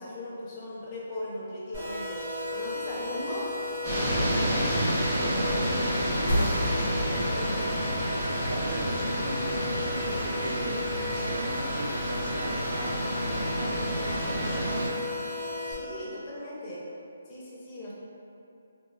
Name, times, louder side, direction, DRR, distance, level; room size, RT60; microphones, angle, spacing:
voice 1, 0.0-2.2 2.5-3.5 15.7-16.8 17.3-18.0, left 1 dB, 20° left, -7 dB, 0.5 m, -38 dB
sound 1, 1.7-15.7, left 2 dB, 50° right, 1.1 m, -35 dB
sound 2, 3.8-14.9, equal, 25° right, 0.9 m, -30 dB
voice 2, 4.2-8.0 8.4-14.7, right 2 dB, 75° right, 1 dB, 0.3 m, -37 dB
sound 3, 6.3-11.4, equal, 80° left, 0.5 m, -34 dB
2.7 x 2.2 x 2.3 m, 2.6 s
hypercardioid pair, 165°, 0 cm